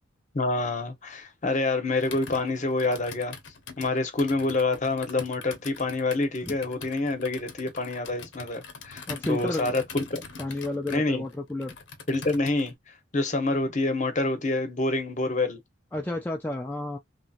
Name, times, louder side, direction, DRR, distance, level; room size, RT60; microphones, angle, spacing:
voice 1, 0.3-3.3 3.8-10.2 10.9-11.3 12.1-12.7 13.1-15.6, left 2 dB, 40° left, 0.9 m, -27 dB
Computer keyboard, 2.0-12.7, left 5 dB, 65° left, 0.8 m, -43 dB
voice 2, 9.1-9.7 10.4-11.7 15.9-17.0, left 1 dB, 10° left, 0.4 m, -31 dB
3.0 x 2.7 x 2.3 m
head